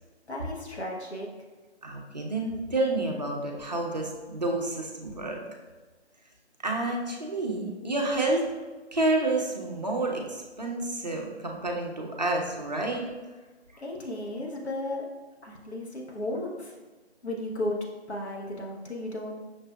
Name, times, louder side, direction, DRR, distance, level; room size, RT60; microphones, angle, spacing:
voice 1, 0.3-1.3 13.8-15.1 15.4-16.8 17.2-17.8 18.1-19.4, left 1 dB, 70° left, -1 dB, 1.0 m, -34 dB
voice 2, 1.8-5.4 6.6-8.4 8.9-13.1, right 2 dB, 40° right, 0 dB, 0.5 m, -29 dB
5.8 x 2.4 x 2.2 m, 1.3 s
figure-of-eight pair, 155°, 34 cm